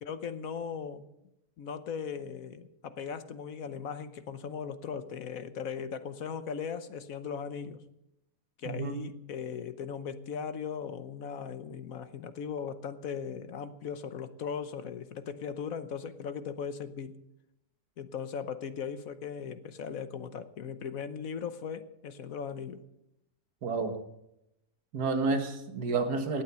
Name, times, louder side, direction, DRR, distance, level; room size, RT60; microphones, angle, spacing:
voice 1, 0.0-1.1 1.6-7.8 8.6-17.2 18.0-22.8, left 7 dB, 65° left, 12 dB, 1.3 m, -38 dB
voice 2, 8.7-9.0 23.6-24.0 24.9-26.4, right 3 dB, 90° right, 7 dB, 2.1 m, -30 dB
17.0 x 9.0 x 6.9 m, 0.85 s
omnidirectional pair, 1.7 m